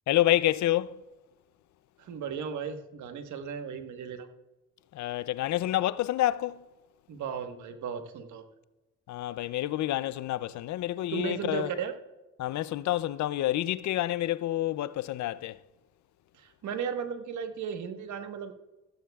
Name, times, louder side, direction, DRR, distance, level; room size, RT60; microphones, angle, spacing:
voice 1, 0.1-1.0 4.9-6.6 9.1-11.7 12.4-15.6, left 14 dB, 70° left, 0.5 m, -28 dB
voice 2, 2.0-4.3 7.1-8.4 11.1-11.9 16.3-18.5, right 7 dB, 75° right, 1.3 m, -35 dB
15.0 x 14.0 x 2.3 m
cardioid pair, 90°, 30 cm